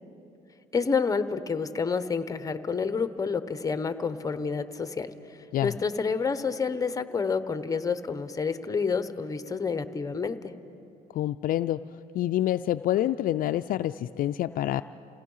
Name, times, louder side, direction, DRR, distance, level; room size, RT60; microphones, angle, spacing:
voice 1, 0.7-5.1 5.6-10.5, left 5 dB, 20° left, 11 dB, 0.9 m, -29 dB
voice 2, 11.1-11.8 12.1-14.8, left 13 dB, 55° left, 11 dB, 0.4 m, -27 dB
28.5 x 17.0 x 5.6 m, 2.9 s
cardioid pair, 110°, 17 cm